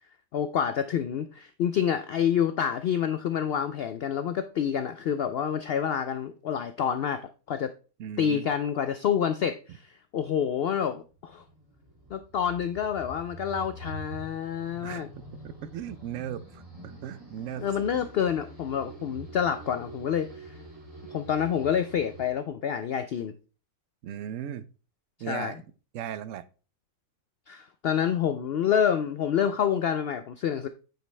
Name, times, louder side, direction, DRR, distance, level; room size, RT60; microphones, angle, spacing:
voice 1, 0.3-7.7 8.2-11.4 12.1-15.1 17.6-20.6 21.1-23.3 25.3-25.6 27.5-30.7, left 8 dB, 85° left, 0.5 m, -28 dB
voice 2, 8.0-8.5 14.8-15.0 15.4-17.7 24.0-24.7 25.2-25.6 25.9-26.4, right 10 dB, 65° right, 0.9 m, -37 dB
sound 1, 11.0-22.3, right 2 dB, 20° right, 2.3 m, -45 dB
8.8 x 5.2 x 3.2 m
omnidirectional pair, 1.6 m